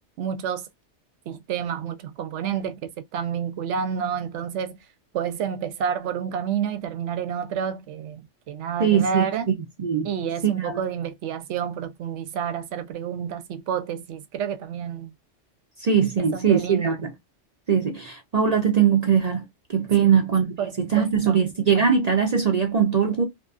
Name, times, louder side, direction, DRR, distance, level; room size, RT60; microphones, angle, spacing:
voice 1, 0.2-0.6 1.3-4.8 5.1-9.5 10.0-15.1 16.2-17.0 20.0-20.2 20.6-21.4, right 7 dB, 80° right, 0.9 m, -29 dB
voice 2, 8.8-9.3 9.8-10.1 10.4-10.8 15.8-17.1 17.7-19.4 19.7-23.2, right 7 dB, 50° right, 0.5 m, -21 dB
2.6 x 2.5 x 2.3 m
omnidirectional pair, 1.2 m